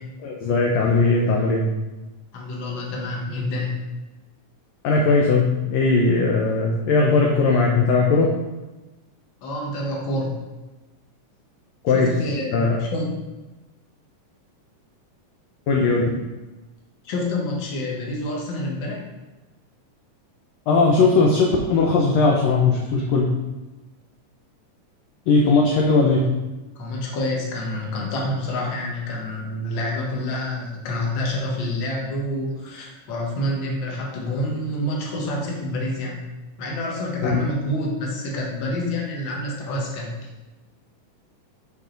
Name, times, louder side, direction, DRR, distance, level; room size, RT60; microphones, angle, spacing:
voice 1, 0.2-1.6 4.8-8.3 11.8-12.1 12.5-12.8 15.7-16.1 20.7-23.3 25.3-26.2 37.2-37.4, left 3 dB, 75° left, -1 dB, 1.6 m, -18 dB
voice 2, 2.3-3.8 9.4-10.4 11.9-13.1 17.0-19.0 26.8-36.2 36.6-40.1, left 1 dB, 50° left, -2 dB, 1.6 m, -27 dB
6.8 x 5.3 x 3.9 m, 1.1 s
omnidirectional pair, 3.8 m